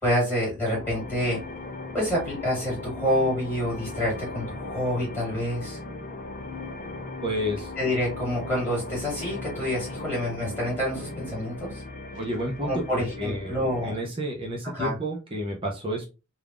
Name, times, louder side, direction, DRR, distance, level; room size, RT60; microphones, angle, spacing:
voice 1, 0.0-1.4 1.9-5.8 7.8-11.8 12.6-13.9 14.7-14.9, equal, 10° left, -6 dB, 1.6 m, -27 dB
sound 1, 0.7-14.1, left 2 dB, 35° left, 0.4 m, -38 dB
voice 2, 7.2-7.7 12.1-13.6 13.8-16.0, equal, 25° right, 0 dB, 0.5 m, -30 dB
3.4 x 2.3 x 2.4 m, 0.28 s
head